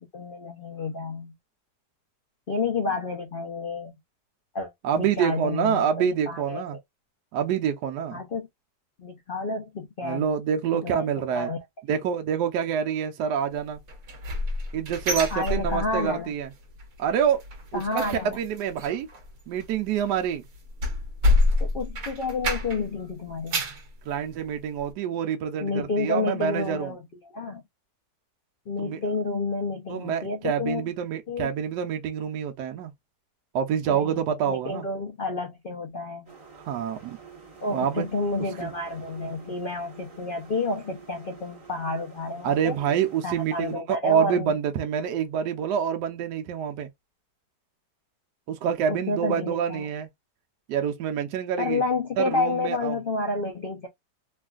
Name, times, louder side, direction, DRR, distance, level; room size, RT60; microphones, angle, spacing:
voice 1, 0.0-1.3 2.5-3.9 4.5-6.6 8.1-8.5 9.0-10.3 10.8-11.1 11.3-11.6 15.3-16.3 17.7-18.4 21.6-23.6 25.6-27.6 28.7-30.9 31.3-31.5 33.9-36.3 37.6-42.8 43.2-44.5 48.9-49.9 51.6-53.9, left 3 dB, 85° left, 0.4 m, -30 dB
voice 2, 4.8-6.8 7.3-8.2 10.0-11.5 11.9-13.8 14.7-16.5 17.0-17.4 17.7-19.1 19.5-20.5 24.0-26.9 28.8-29.0 29.9-32.9 33.5-34.9 36.6-37.2 37.7-38.1 38.6-38.7 42.4-46.9 48.5-50.1 50.7-51.8 52.2-53.0, right 8 dB, 80° right, 1.2 m, -27 dB
sound 1, 13.9-16.2 16.5-16.9 17.1-22.9 23.3-23.9 24.4-24.5 24.9-25.0, left 2 dB, 60° right, 1.2 m, -27 dB
sound 2, 36.3-43.8, right 5 dB, 20° right, 1.0 m, -48 dB
3.3 x 2.4 x 2.3 m
omnidirectional pair, 1.9 m